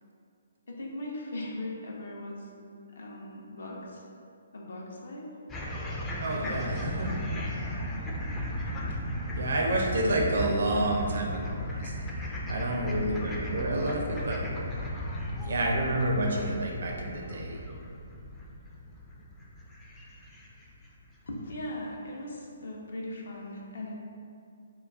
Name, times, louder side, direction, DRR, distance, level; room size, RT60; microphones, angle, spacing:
voice 1, 0.7-2.5 2.9-4.0 4.5-5.3 21.3-23.9, left 1 dB, 65° left, -2 dB, 0.5 m, -39 dB
sound 1, 5.5-20.9, equal, 15° left, 0.3 m, -35 dB
voice 2, 6.2-7.1 9.3-11.9 12.5-14.4 15.4-17.6, right 1 dB, 65° right, -1 dB, 0.5 m, -29 dB
2.3 x 2.3 x 3.4 m, 2.4 s
figure-of-eight pair, 135°, 0 cm